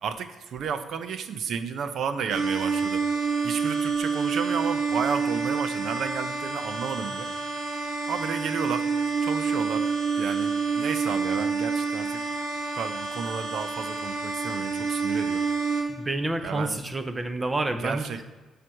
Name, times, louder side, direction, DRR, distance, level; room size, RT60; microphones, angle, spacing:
voice 1, 0.0-3.0 3.4-7.3 8.1-8.9 9.2-9.9 10.2-12.2 12.8-15.4 16.4-16.8 17.8-18.2, right 6 dB, 65° right, 10 dB, 0.7 m, -32 dB
sound 1, 2.3-15.8, right 4 dB, 85° right, 2.1 m, -28 dB
voice 2, 15.9-18.2, right 2 dB, 20° right, 8 dB, 0.8 m, -29 dB
7.6 x 5.0 x 6.2 m, 1.3 s
cardioid pair, 90°, 0 cm